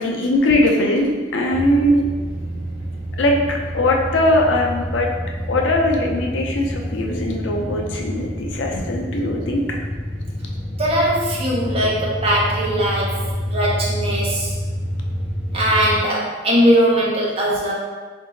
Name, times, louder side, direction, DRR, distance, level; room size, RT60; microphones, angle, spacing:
voice 1, 0.0-2.1 3.2-5.1 5.5-9.6, left 1 dB, 80° left, 0 dB, 0.5 m, -20 dB
sound 1, 1.5-16.0, equal, 65° right, 0.9 m, -28 dB
voice 2, 10.8-14.5 15.5-17.7, equal, 30° right, -4 dB, 0.7 m, -20 dB
2.9 x 2.6 x 3.8 m, 1.4 s
head